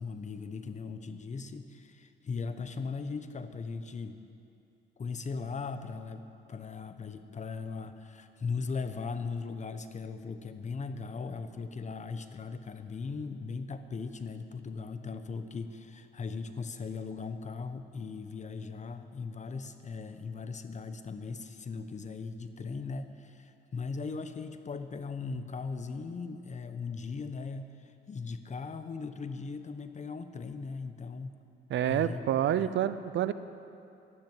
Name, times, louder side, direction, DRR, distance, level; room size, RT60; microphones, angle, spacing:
voice 1, 0.0-4.2 5.0-31.3 31.8-32.2 32.6-32.7, left 4 dB, 35° left, 10 dB, 1.0 m, -38 dB
voice 2, 31.7-33.3, right 10 dB, 70° right, 14 dB, 0.7 m, -28 dB
12.5 x 12.0 x 7.8 m, 2.6 s
cardioid pair, 90°, 20 cm